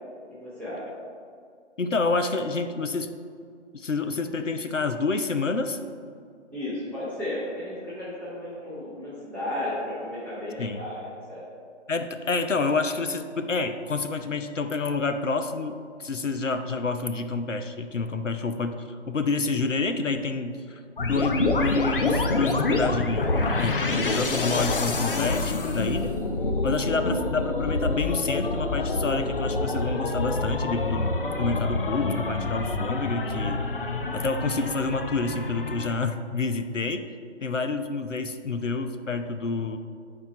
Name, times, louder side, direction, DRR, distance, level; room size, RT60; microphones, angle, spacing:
voice 1, 0.3-0.8 6.5-11.4, left 1 dB, 5° left, -10 dB, 0.9 m, -34 dB
voice 2, 1.8-3.1 3.7-5.8 10.6-10.8 11.9-26.1 26.6-33.7 34.1-37.0 37.4-39.8, left 3 dB, 90° left, 8 dB, 0.7 m, -28 dB
sound 1, 21.0-35.9, left 2 dB, 50° left, 0.7 m, -27 dB
10.0 x 4.4 x 4.3 m, 2.2 s
figure-of-eight pair, 145°, 36 cm